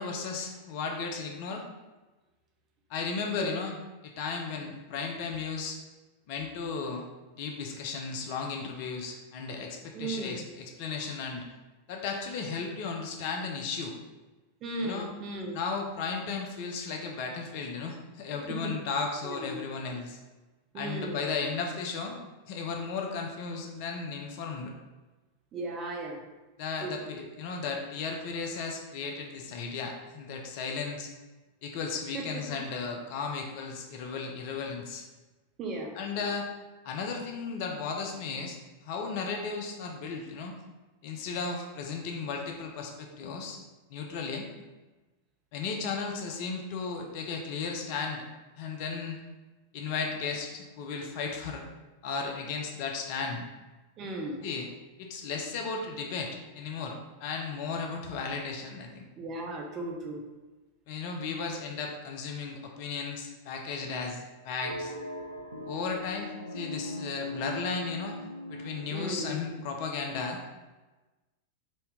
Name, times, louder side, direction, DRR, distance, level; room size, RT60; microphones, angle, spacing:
voice 1, 0.0-1.6 2.9-3.8 4.0-5.8 6.3-7.0 7.4-11.4 11.9-13.9 14.8-15.1 15.5-20.2 20.7-22.2 22.5-24.7 26.6-31.1 31.6-35.1 36.0-36.5 36.8-38.6 38.8-40.6 41.0-43.6 43.9-44.5 45.5-48.3 48.6-49.2 49.7-51.6 52.0-53.5 54.4-54.7 55.0-59.1 60.9-64.9 65.7-68.2 68.5-70.4, left 5 dB, 45° left, 2 dB, 0.6 m, -35 dB
voice 2, 9.9-10.4 14.6-15.6 18.3-18.7 19.2-19.6 20.7-21.2 25.5-26.2 26.8-26.9 32.1-32.6 35.6-36.3 54.0-54.4 59.2-60.2 68.9-69.3, right 2 dB, 30° right, 1 dB, 0.7 m, -36 dB
sound 1, 64.6-70.0, left 1 dB, 85° right, 0.4 m, -40 dB
4.1 x 2.7 x 3.3 m, 1.2 s
figure-of-eight pair, 90°, 0 cm